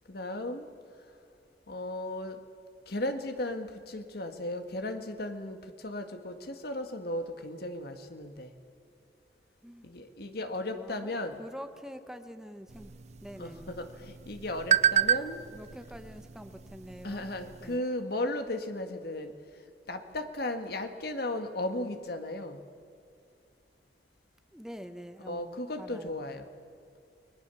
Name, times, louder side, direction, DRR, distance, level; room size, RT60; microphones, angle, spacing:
voice 1, 0.1-0.7 1.7-2.4 2.9-8.5 9.8-11.4 13.4-15.4 17.0-19.3 19.9-22.6 25.3-26.5, left 1 dB, 60° left, 7 dB, 1.8 m, -35 dB
voice 2, 10.6-12.9 13.2-13.9 15.5-17.3 17.6-17.9 24.5-26.2, equal, 5° right, 8 dB, 0.9 m, -46 dB
sound 1, 12.7-17.8, right 9 dB, 40° right, 0.5 m, -31 dB
30.0 x 20.5 x 7.1 m, 2.4 s
head